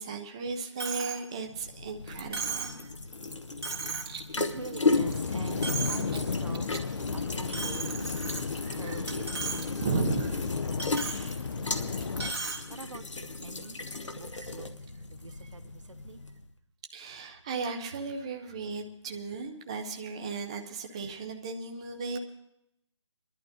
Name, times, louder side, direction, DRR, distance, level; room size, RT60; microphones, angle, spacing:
voice 1, 0.0-2.8 7.5-7.6 8.6-9.2 9.8-10.4 16.9-22.2, right 4 dB, 10° right, 3 dB, 0.4 m, -35 dB
Coin (dropping), 0.8-1.2 1.6-1.7 2.3-2.8 3.3-3.4 3.6-4.2 4.6-5.2 5.5-6.2 6.5-6.8 7.5-8.7 9.1-9.6 10.0-10.1 10.8-11.2 12.2-12.6, right 5 dB, 55° right, 1.8 m, -35 dB
sound 1, 1.4-16.5, left 3 dB, 85° left, 1.0 m, -35 dB
voice 2, 3.9-8.1 8.4-12.3 12.7-13.8 14.1-14.8 15.1-16.2, right 3 dB, 90° right, 10 dB, 1.0 m, -44 dB
sound 2, 4.9-12.3, left 5 dB, 50° left, 0.5 m, -34 dB
29.0 x 11.0 x 2.6 m, 0.81 s
figure-of-eight pair, 160°, 15 cm